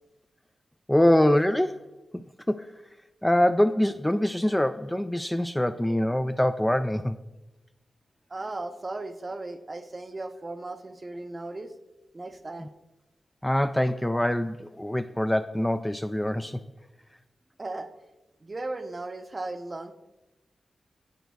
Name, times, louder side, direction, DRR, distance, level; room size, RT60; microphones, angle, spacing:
voice 1, 0.9-1.9 2.1-2.8 3.2-7.2 12.6-12.7 13.4-16.6, left 1 dB, 10° left, 9 dB, 0.3 m, -24 dB
voice 2, 8.3-11.7 12.1-12.7 17.6-17.9 18.4-19.9, right 2 dB, 35° right, 8 dB, 0.7 m, -36 dB
10.5 x 8.1 x 2.3 m, 0.99 s
cardioid pair, 60°, 0 cm